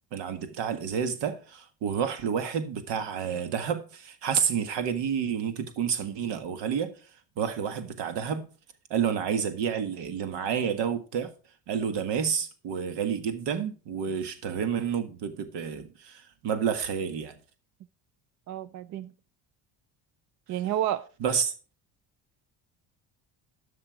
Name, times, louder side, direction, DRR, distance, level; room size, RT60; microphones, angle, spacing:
voice 1, 0.1-6.9 7.4-8.5 8.9-11.3 11.7-17.3 21.2-21.5, right 7 dB, 70° right, 1.7 m, -29 dB
voice 2, 18.5-19.1 20.5-21.1, right 12 dB, 45° right, 0.5 m, -30 dB
11.5 x 6.1 x 4.7 m
cardioid pair, 125°, 43 cm